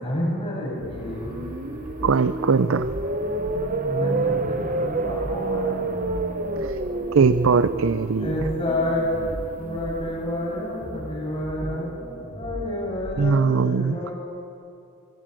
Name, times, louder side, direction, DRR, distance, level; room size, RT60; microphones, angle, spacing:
voice 1, 0.0-1.4 3.8-5.8 8.2-9.1 9.6-11.9 12.3-14.1, left 1 dB, 25° left, -3 dB, 6.8 m, -29 dB
sound 1, 0.8-13.6, equal, 20° right, 7.5 m, -38 dB
sound 2, 1.0-11.1, right 2 dB, 35° right, 0.8 m, -29 dB
voice 2, 2.0-2.9 6.6-6.8 7.1-8.3 13.2-14.0, right 5 dB, 70° right, 13 dB, 0.5 m, -20 dB
23.0 x 18.0 x 7.7 m, 2.6 s
head